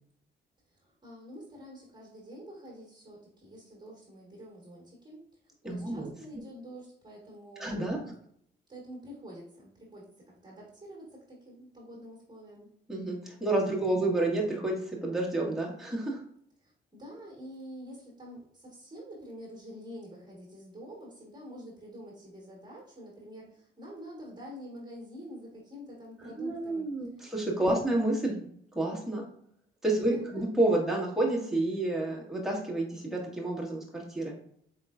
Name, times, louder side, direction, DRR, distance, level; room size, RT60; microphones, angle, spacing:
voice 1, 0.7-8.1 8.7-12.7 13.6-14.1 16.6-27.3 30.0-30.5, equal, 20° right, -3 dB, 1.6 m, -47 dB
voice 2, 5.6-6.1 7.6-8.0 12.9-16.2 26.4-28.3 28.7-29.2 29.8-34.4, right 2 dB, ahead, -3 dB, 1.4 m, -29 dB
4.6 x 3.6 x 2.5 m, 0.67 s
cardioid pair, 90°, 20 cm